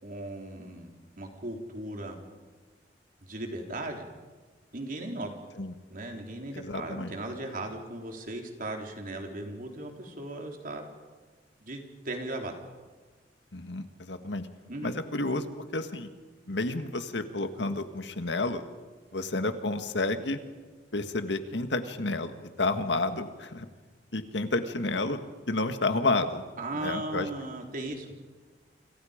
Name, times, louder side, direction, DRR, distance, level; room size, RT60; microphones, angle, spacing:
voice 1, 0.0-0.9 1.2-2.2 3.2-4.0 4.7-5.3 5.9-10.8 11.6-12.5 14.7-14.9 26.6-28.1, right 2 dB, 50° right, 2 dB, 3.7 m, -37 dB
voice 2, 6.5-7.1 13.5-14.5 14.8-15.5 15.7-16.1 16.5-18.6 19.1-20.4 20.9-22.3 22.6-23.7 24.1-25.2 25.5-26.4 26.8-27.3, left 2 dB, 85° left, 8 dB, 1.8 m, -30 dB
29.0 x 27.0 x 5.2 m, 1.4 s
head